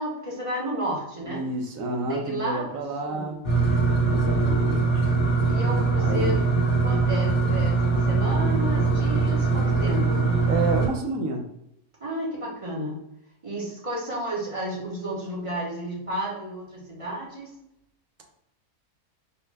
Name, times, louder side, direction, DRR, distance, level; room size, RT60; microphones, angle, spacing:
voice 1, 0.0-1.4 2.1-3.3 5.5-6.5 6.8-10.3 12.0-13.0 13.4-17.5, equal, 25° right, -5 dB, 1.0 m, -32 dB
voice 2, 1.3-3.4 4.1-5.1 6.0-6.3 10.5-11.5, right 3 dB, 70° right, 3 dB, 1.1 m, -30 dB
sound 1, 3.4-10.9, right 4 dB, 55° left, 1.4 m, -22 dB
4.2 x 2.1 x 3.3 m, 0.79 s
omnidirectional pair, 1.5 m